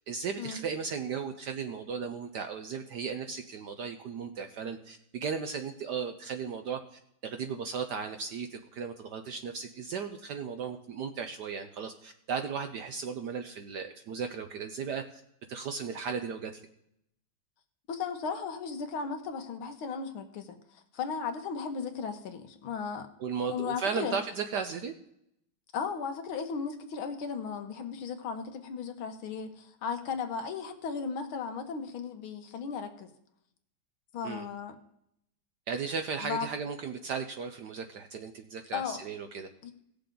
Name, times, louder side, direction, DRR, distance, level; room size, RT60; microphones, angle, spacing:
voice 1, 0.1-15.2 15.5-16.6 23.2-24.9 34.2-34.5 35.7-39.5, right 6 dB, 70° right, 7 dB, 1.0 m, -36 dB
voice 2, 17.9-23.1 23.5-24.2 25.7-33.1 34.1-34.8 36.2-36.5 38.7-39.0 39.6-39.7, left 6 dB, 75° left, 6 dB, 1.9 m, -36 dB
17.5 x 6.8 x 3.8 m, 0.75 s
omnidirectional pair, 2.4 m